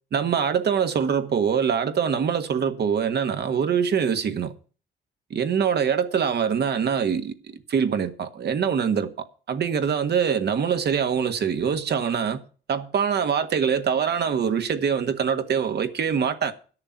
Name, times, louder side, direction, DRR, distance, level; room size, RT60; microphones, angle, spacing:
voice 1, 0.1-4.5 5.3-12.4 12.7-16.5, right 7 dB, 55° right, 1.6 m, -24 dB
11.5 x 6.8 x 8.5 m
cardioid pair, 90°, 20 cm